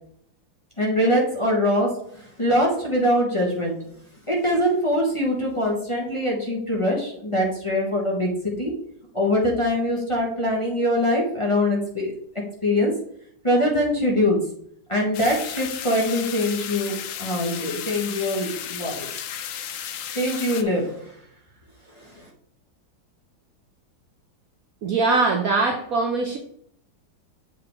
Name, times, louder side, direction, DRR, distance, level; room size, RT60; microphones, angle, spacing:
voice 1, 0.8-3.8 4.3-8.7 9.1-12.1 12.6-12.9 13.4-14.4 14.9-19.1 20.1-21.1 21.9-22.3, left 1 dB, 20° left, -3 dB, 1.2 m, -23 dB
sound 1, 15.1-20.6, left 9 dB, 85° left, 0.7 m, -34 dB
voice 2, 24.8-26.4, right 3 dB, 65° right, 3 dB, 1.0 m, -22 dB
7.7 x 4.7 x 3.5 m, 0.66 s
omnidirectional pair, 2.1 m